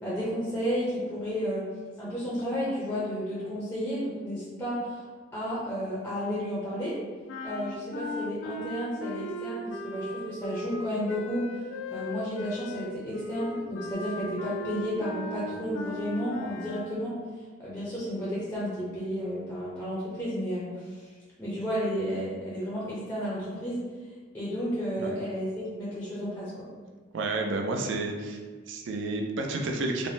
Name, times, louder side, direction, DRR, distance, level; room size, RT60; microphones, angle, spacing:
voice 1, 0.0-1.7 2.0-5.1 5.3-7.0 7.4-11.5 11.9-17.2 17.6-23.8 24.3-26.5, equal, 10° left, -8 dB, 0.5 m, -32 dB
sound 1, 7.3-16.9, left 1 dB, 75° left, 0.4 m, -37 dB
voice 2, 27.1-28.4 28.7-30.1, right 2 dB, 70° right, 3 dB, 0.4 m, -30 dB
3.3 x 2.1 x 2.6 m, 1.4 s
head